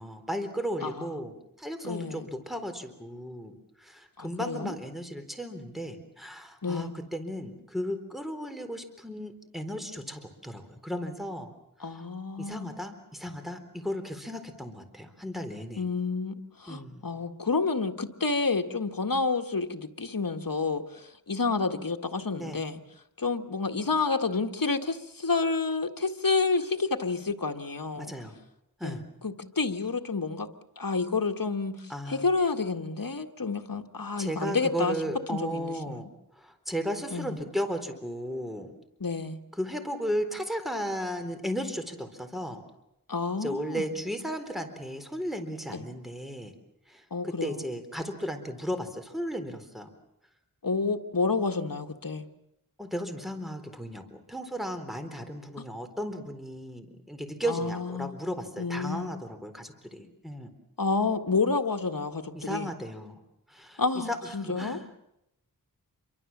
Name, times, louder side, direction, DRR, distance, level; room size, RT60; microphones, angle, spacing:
voice 1, 0.0-1.3 1.6-11.5 11.8-12.0 12.4-15.8 16.7-17.0 22.3-22.6 28.0-28.4 28.8-29.0 31.9-32.2 34.2-36.1 36.4-38.7 39.5-42.6 43.4-46.5 46.9-49.9 52.8-60.5 62.3-63.2 63.5-65.0, equal, ahead, 6 dB, 4.0 m, -35 dB
voice 2, 1.8-2.3 4.2-4.8 6.6-7.0 11.8-12.7 15.8-22.8 23.2-28.1 28.8-30.5 30.8-35.0 35.3-36.0 37.1-37.4 39.0-39.4 43.1-43.9 45.7-45.9 47.1-47.6 50.6-52.3 55.6-55.7 57.5-58.1 58.6-59.1 60.8-62.7 63.8-64.8, left 4 dB, 65° left, 5 dB, 1.7 m, -29 dB
28.0 x 23.5 x 7.4 m, 0.83 s
wide cardioid pair, 50°, 36 cm